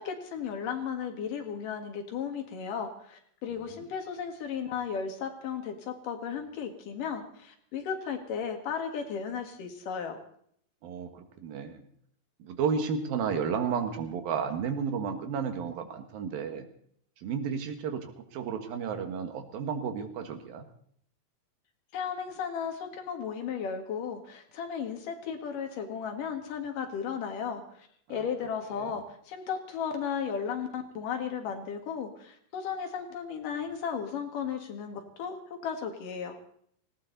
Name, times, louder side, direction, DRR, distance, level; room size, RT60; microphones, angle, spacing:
voice 1, 0.0-10.2 21.9-36.4, left 7 dB, 70° left, 5 dB, 3.4 m, -35 dB
voice 2, 10.8-11.9 12.4-16.7 17.2-20.6 28.1-28.2 28.8-28.9, right 6 dB, 80° right, 7 dB, 3.3 m, -32 dB
18.5 x 17.5 x 4.0 m, 0.64 s
omnidirectional pair, 4.1 m